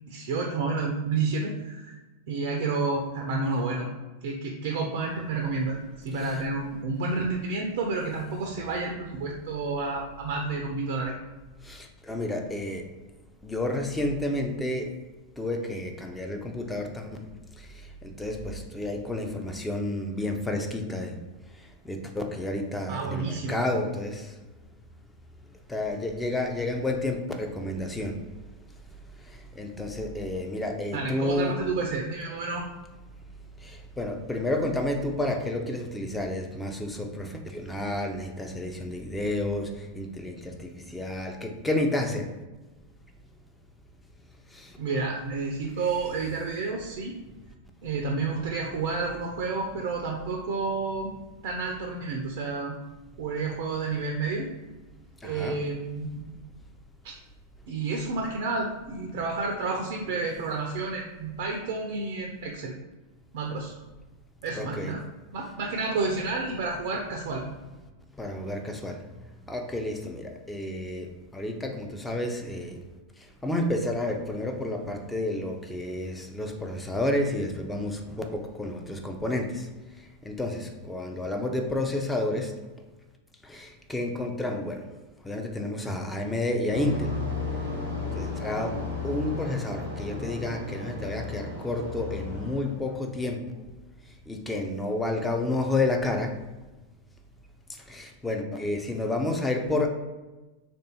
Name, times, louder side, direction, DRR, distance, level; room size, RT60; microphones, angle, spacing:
voice 1, 0.1-2.0 2.3-3.9 4.2-11.1 22.9-23.5 30.9-32.7 44.8-47.2 47.8-51.1 51.4-52.7 53.2-54.5 55.2-56.3 57.0-57.1 57.7-62.7 63.3-63.7 64.4-65.0 65.3-67.4, right 3 dB, 50° right, 1 dB, 0.5 m, -30 dB
voice 2, 11.6-12.9 13.4-15.0 15.4-17.2 17.6-21.2 21.5-24.4 25.7-28.3 29.2-31.6 33.6-42.3 44.5-44.8 55.2-55.6 64.5-64.9 68.1-69.1 69.5-72.8 73.2-79.7 80.0-82.6 83.4-84.8 85.2-87.2 88.1-93.7 94.3-96.4 97.7-99.9, left 1 dB, 10° left, 3 dB, 0.5 m, -30 dB
sound 1, 86.7-92.8, left 3 dB, 85° left, 1.2 m, -34 dB
3.3 x 2.6 x 4.2 m, 1.1 s
figure-of-eight pair, 90°, 0 cm